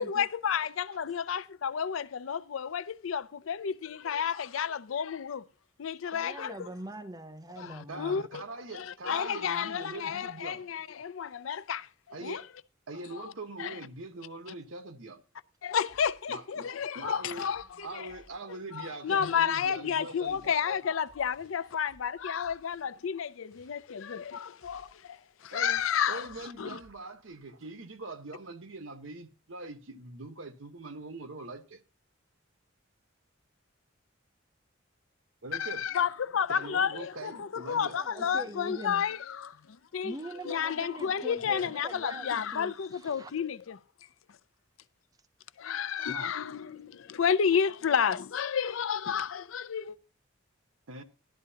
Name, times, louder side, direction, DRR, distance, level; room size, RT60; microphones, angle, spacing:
voice 1, 0.0-5.4 5.8-6.7 7.6-8.4 8.7-12.4 13.1-13.3 13.6-13.8 15.6-18.1 18.7-26.3 26.6-26.8 35.5-40.1 40.4-43.8 45.6-50.0, left 7 dB, 90° left, 0.5 m, -31 dB
voice 2, 6.1-8.2 37.8-39.1 40.0-43.3, right 1 dB, 20° right, 0.6 m, -43 dB
voice 3, 7.9-10.6 12.1-12.5 12.9-15.2 16.3-16.7 16.9-17.5 17.8-20.5 25.5-31.8 35.4-35.8 36.5-38.0 41.5-41.7 46.1-47.0 50.9-51.0, right 2 dB, 85° right, 1.2 m, -43 dB
sound 1, 15.9-27.6, equal, 15° left, 5.6 m, -64 dB
13.5 x 12.0 x 2.8 m
head